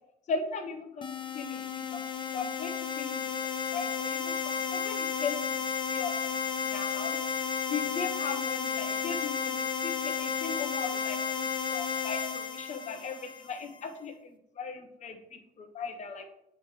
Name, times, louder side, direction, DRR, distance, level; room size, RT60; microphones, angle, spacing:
voice 1, 0.3-1.1 1.3-2.1 2.3-3.3 3.7-5.6 5.9-7.2 7.7-16.2, left 5 dB, 45° left, 4 dB, 1.1 m, -38 dB
sound 1, 1.0-13.7, left 6 dB, 30° left, 0.7 m, -33 dB
9.5 x 3.4 x 3.8 m, 0.79 s
cardioid pair, 110°, 17 cm